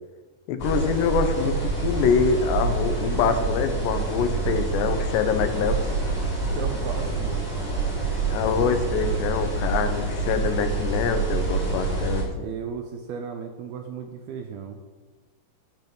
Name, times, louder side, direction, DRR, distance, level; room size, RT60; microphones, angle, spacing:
voice 1, 0.5-5.8 8.3-12.5, left 6 dB, 85° left, 8 dB, 3.1 m, -25 dB
sound 1, 0.6-12.2, right 3 dB, 20° left, 4.2 m, -27 dB
voice 2, 6.4-7.5 12.4-14.8, right 7 dB, 75° right, 5 dB, 2.5 m, -35 dB
12.0 x 8.0 x 5.4 m, 1.3 s
omnidirectional pair, 4.8 m